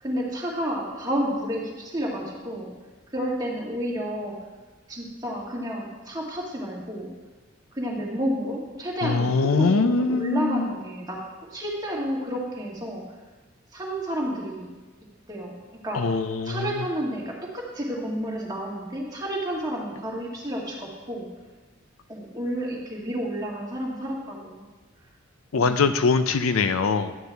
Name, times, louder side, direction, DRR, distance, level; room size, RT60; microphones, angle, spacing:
voice 1, 0.0-2.7 3.1-4.4 4.9-7.1 7.7-13.0 13.7-14.7 15.3-15.6 15.8-16.2 16.4-21.3 22.1-24.7 25.6-25.8, equal, 20° right, -3 dB, 1.7 m, -30 dB
voice 2, 9.0-10.7 15.9-16.6 25.5-27.1, left 4 dB, 85° left, 10 dB, 0.5 m, -22 dB
11.0 x 9.3 x 3.4 m, 1.2 s
head